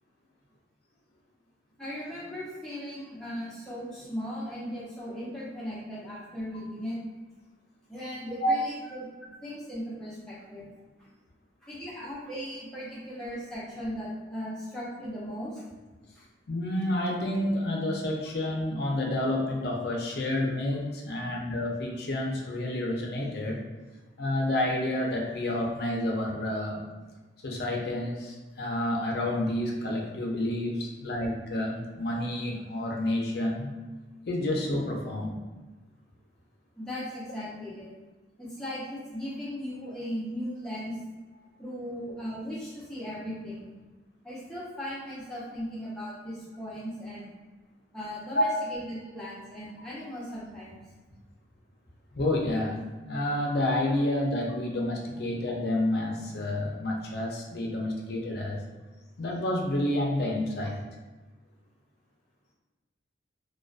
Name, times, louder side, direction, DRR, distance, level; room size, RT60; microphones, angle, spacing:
voice 1, 1.8-7.0 7.9-9.1 9.4-10.7 11.6-15.6 36.8-37.9 38.4-41.0 41.6-43.7 44.2-47.3 47.9-50.8, equal, 5° left, -9 dB, 0.7 m, -37 dB
voice 2, 16.5-23.6 24.2-26.8 27.4-33.7 34.3-35.4 48.3-48.6 52.1-58.6 59.2-60.8, left 1 dB, 55° left, -1 dB, 0.4 m, -29 dB
2.4 x 2.2 x 2.4 m, 1.2 s
head